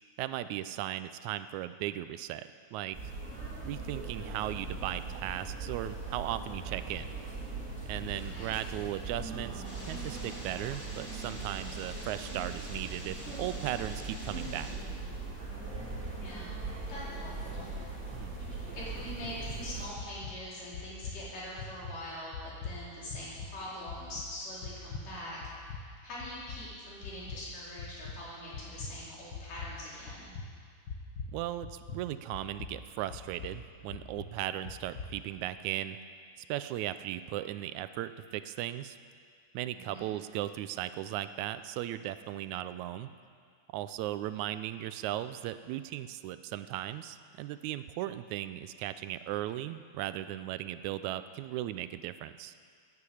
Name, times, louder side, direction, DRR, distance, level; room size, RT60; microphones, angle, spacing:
voice 1, 0.2-3.0 3.7-7.1 7.9-14.7 18.1-18.4 31.3-36.0 36.5-39.0 39.5-43.1 43.7-52.5, right 13 dB, 80° right, 12 dB, 1.8 m, -37 dB
sound 1, 2.9-19.9, right 3 dB, 20° right, 2.8 m, -40 dB
voice 2, 8.1-8.6 16.1-16.6 16.9-17.7 18.7-22.4 22.6-30.4 39.7-40.1, left 1 dB, 90° left, -7 dB, 5.7 m, -43 dB
sound 2, 9.6-14.7, equal, 5° left, 4.3 m, -47 dB
sound 3, 19.2-19.6 20.0-20.4 20.7-21.2 21.6-21.9 22.3-22.8 23.1-23.5 23.9-24.3 24.6-25.0 25.4-25.8 26.2-26.6 27.0-27.4 27.8-28.2 28.5-28.9 29.3-29.7 30.1-30.5 30.9-31.4 31.6-32.1 32.3-32.7 33.1-33.5 33.9-34.3 34.6-35.1, left 5 dB, 65° left, 1.1 m, -41 dB
15.5 x 9.8 x 8.5 m, 2.1 s
omnidirectional pair, 3.7 m